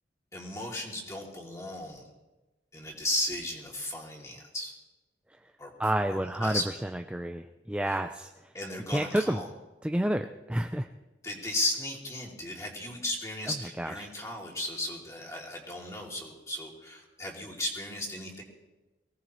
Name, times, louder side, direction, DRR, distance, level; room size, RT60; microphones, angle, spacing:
voice 1, 0.3-2.0 2.7-4.8 5.6-5.7 6.1-6.6 7.8-8.0 8.5-9.5 11.2-18.4, left 1 dB, 15° left, -1 dB, 2.7 m, -35 dB
voice 2, 5.8-6.6 7.1-8.3 8.9-9.4 9.8-10.9 13.5-13.9, right 1 dB, 5° right, 5 dB, 0.4 m, -29 dB
23.5 x 17.5 x 3.1 m, 1.1 s
head